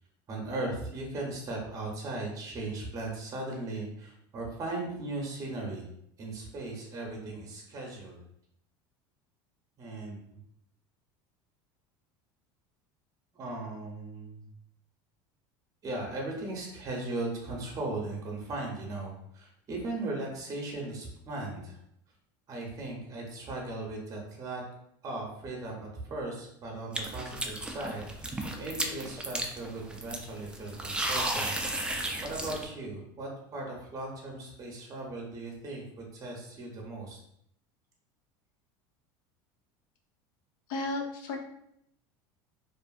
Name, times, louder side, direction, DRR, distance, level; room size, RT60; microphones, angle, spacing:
voice 1, 0.3-5.9 6.2-8.2 9.8-10.2 13.3-14.5 15.8-21.8 22.5-24.6 25.0-31.9 32.2-37.2, right 2 dB, 30° right, -1 dB, 0.7 m, -38 dB
sound 1, 26.9-32.7, right 1 dB, 10° right, 0.3 m, -34 dB
voice 2, 40.7-41.4, left 2 dB, 80° left, 2 dB, 0.6 m, -33 dB
2.5 x 2.4 x 2.4 m, 0.74 s
supercardioid pair, 120°, 11 cm